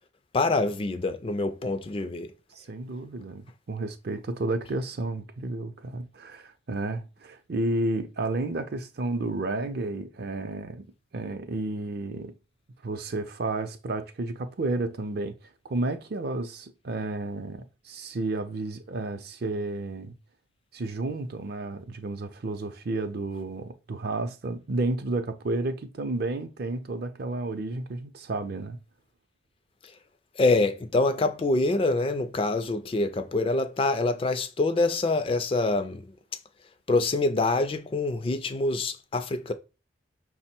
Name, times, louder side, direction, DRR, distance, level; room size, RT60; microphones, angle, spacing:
voice 1, 0.3-2.3 30.4-36.1 36.9-39.5, left 2 dB, 30° left, 0.3 m, -25 dB
voice 2, 2.5-10.9 11.1-12.3 12.8-15.3 15.6-20.1 20.7-28.8, right 2 dB, 55° right, 0.5 m, -31 dB
5.8 x 2.1 x 4.3 m
head